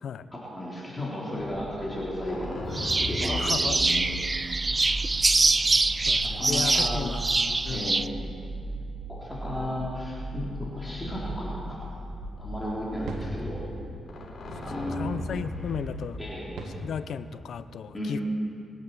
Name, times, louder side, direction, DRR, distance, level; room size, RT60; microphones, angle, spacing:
voice 1, 0.3-4.0 6.2-7.2 7.7-8.1 9.1-11.8 12.4-13.6 14.6-15.2 16.2-16.6 17.9-18.2, left 1 dB, 20° left, -6 dB, 4.0 m, -34 dB
sound 1, 1.4-15.8, equal, 55° left, 4.3 m, -37 dB
sound 2, 2.7-8.1, right 3 dB, 30° right, 0.5 m, -24 dB
voice 2, 3.3-3.8 6.1-7.3 7.6-7.9 14.9-16.2 16.8-18.2, left 7 dB, 75° left, 13 dB, 0.6 m, -34 dB
sound 3, 11.1-12.4 13.0-15.4 16.2-17.5, right 1 dB, 80° right, 1.7 m, -41 dB
22.0 x 8.2 x 7.3 m, 2.5 s
cardioid pair, 70°, 0 cm